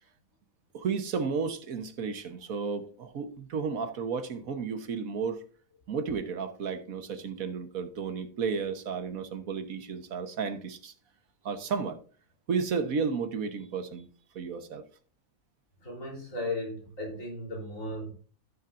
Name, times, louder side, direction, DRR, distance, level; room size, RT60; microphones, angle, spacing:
voice 1, 0.7-5.4 5.9-10.9 11.4-12.0 12.5-14.1 14.3-14.8, right 5 dB, 85° right, 1.6 m, -33 dB
voice 2, 15.8-18.1, left 1 dB, 70° left, 4.1 m, -36 dB
15.0 x 7.2 x 2.6 m
omnidirectional pair, 1.4 m